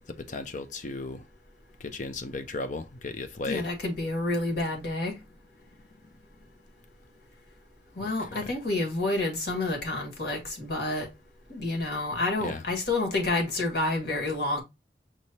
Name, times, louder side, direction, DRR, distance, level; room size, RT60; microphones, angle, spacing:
voice 1, 0.1-1.2 1.8-3.7 12.4-12.6, left 3 dB, 40° left, 0.5 m, -35 dB
voice 2, 3.5-5.2 8.0-11.1 11.5-14.6, left 2 dB, 55° left, 1.7 m, -29 dB
6.1 x 3.2 x 2.7 m
head